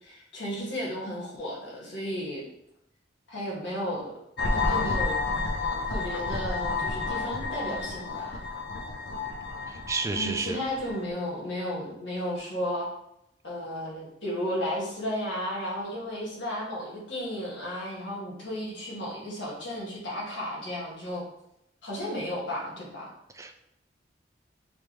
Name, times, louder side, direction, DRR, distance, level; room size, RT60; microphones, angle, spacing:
voice 1, 0.0-2.4 3.3-4.1 4.5-5.1 5.9-8.4 10.1-12.9 13.4-21.2 21.8-23.1, equal, 85° left, -5 dB, 1.7 m, -33 dB
sound 1, 4.4-11.1, left 3 dB, 65° left, 0.7 m, -31 dB
voice 2, 9.7-10.6 23.3-23.6, right 3 dB, 15° right, 6 dB, 0.3 m, -31 dB
5.0 x 3.3 x 3.0 m, 0.80 s
head